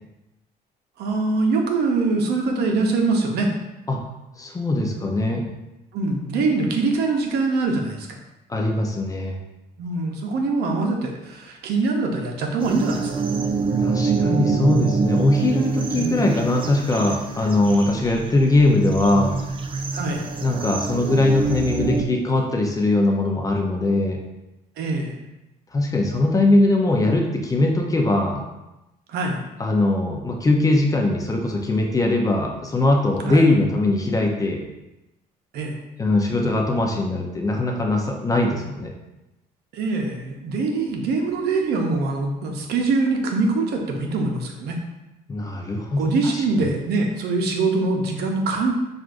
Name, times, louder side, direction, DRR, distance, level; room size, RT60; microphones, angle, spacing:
voice 1, 1.0-3.5 5.9-8.1 9.8-13.2 15.9-16.2 19.9-20.2 24.8-25.1 29.1-29.4 33.3-33.4 35.5-35.8 39.7-44.8 46.0-48.7, right 3 dB, 70° right, 2 dB, 0.7 m, -23 dB
voice 2, 4.4-5.5 8.5-9.4 13.8-19.3 20.4-24.2 25.7-28.4 29.6-34.6 36.0-38.9 45.3-46.7, left 2 dB, 20° left, 1 dB, 0.6 m, -21 dB
sound 1, 12.6-22.0, right 5 dB, 30° right, 0.4 m, -25 dB
5.9 x 2.5 x 2.5 m, 0.97 s
cardioid pair, 110°, 17 cm